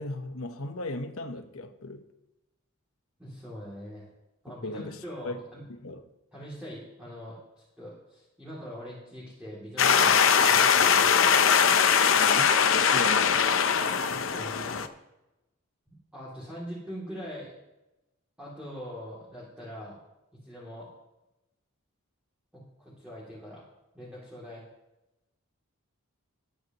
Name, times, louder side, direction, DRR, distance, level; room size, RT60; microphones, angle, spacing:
voice 1, 0.0-2.0 4.6-5.4 5.7-6.0 12.1-13.5, left 2 dB, 80° left, 1.2 m, -37 dB
voice 2, 3.2-4.1 4.4-5.6 6.3-11.1 14.0-14.9 15.9-17.5 18.4-20.0 20.4-20.9 22.5-23.6 23.9-24.6, equal, 5° right, 2.8 m, -42 dB
sound 1, 9.8-14.9, left 7 dB, 60° left, 0.7 m, -21 dB
21.0 x 8.4 x 3.0 m
head